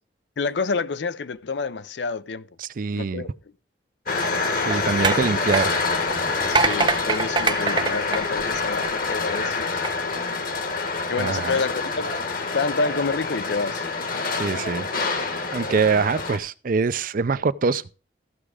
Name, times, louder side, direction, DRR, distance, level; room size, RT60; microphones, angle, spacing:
voice 1, 0.4-2.5 2.9-3.3 6.5-9.8 11.1-12.1 12.5-13.9, left 4 dB, 85° left, 0.6 m, -28 dB
voice 2, 2.6-3.3 4.5-5.7 11.2-11.6 14.4-17.8, right 4 dB, 50° right, 0.5 m, -24 dB
sound 1, 4.1-16.4, left 3 dB, 55° left, 1.4 m, -26 dB
sound 2, 4.2-9.1 9.7-9.9, right 4 dB, 30° right, 0.8 m, -26 dB
14.5 x 6.0 x 4.9 m
head